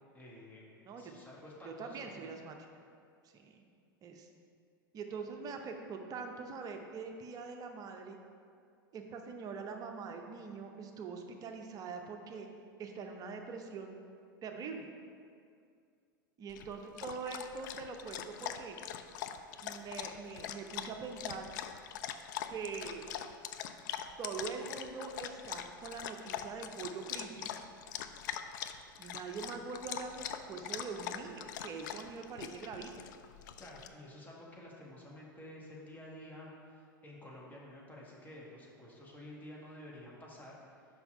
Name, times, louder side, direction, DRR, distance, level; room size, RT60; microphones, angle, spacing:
voice 1, 0.1-2.3 33.6-40.9, left 1 dB, 15° left, -4 dB, 1.7 m, -51 dB
voice 2, 1.6-2.6 3.3-3.6 4.0-4.3 4.9-8.2 8.9-12.5 12.8-14.0 14.4-14.9 16.4-18.8 19.6-21.5 22.5-23.1 24.2-27.5 29.0-33.0, right 5 dB, 35° right, 4 dB, 0.7 m, -43 dB
Dog, 16.5-33.9, left 10 dB, 60° left, 0.4 m, -43 dB
5.7 x 5.6 x 5.3 m, 2.3 s
figure-of-eight pair, 85°, 11 cm